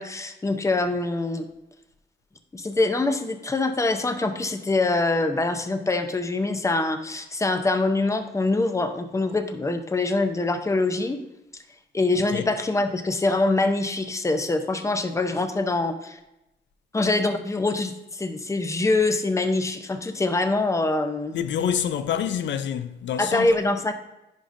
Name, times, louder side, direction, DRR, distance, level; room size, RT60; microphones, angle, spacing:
voice 1, 0.0-1.5 2.5-11.2 11.5-11.6 11.9-16.2 16.9-21.4 23.2-23.9, left 2 dB, 15° left, 0.6 m, -24 dB
voice 2, 12.1-12.5 21.3-23.5, left 9 dB, 80° left, 0.4 m, -27 dB
10.5 x 5.0 x 2.6 m
cardioid pair, 100°, 19 cm